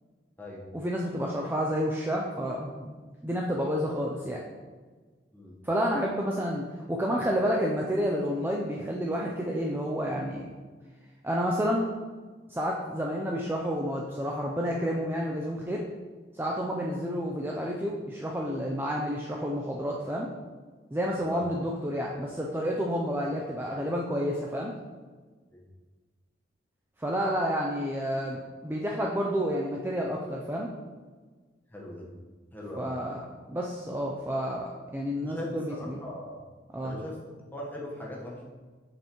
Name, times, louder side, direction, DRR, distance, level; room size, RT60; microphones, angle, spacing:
voice 1, 0.7-3.0 3.2-4.4 5.6-10.5 11.2-11.9 12.5-15.8 16.3-20.3 20.9-24.7 27.0-30.7 32.8-36.0 36.7-37.0, equal, 10° right, -2 dB, 0.4 m, -30 dB
voice 2, 21.2-21.5 25.5-25.6 31.7-32.1 32.5-32.9 35.2-36.4 36.8-37.2 37.5-38.4, left 1 dB, 10° left, -3 dB, 1.1 m, -39 dB
7.1 x 5.5 x 3.0 m, 1.4 s
head